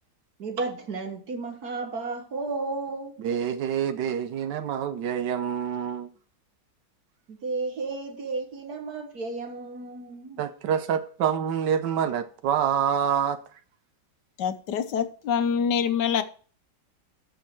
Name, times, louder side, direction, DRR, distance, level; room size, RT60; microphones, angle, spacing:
voice 1, 0.4-3.2 7.3-10.4, right 3 dB, 60° right, 1.9 m, -33 dB
voice 2, 3.2-6.1 10.4-13.4, right 8 dB, 80° right, 1.4 m, -26 dB
voice 3, 14.4-16.2, left 7 dB, 75° left, 1.4 m, -25 dB
13.5 x 5.5 x 4.5 m
omnidirectional pair, 1.9 m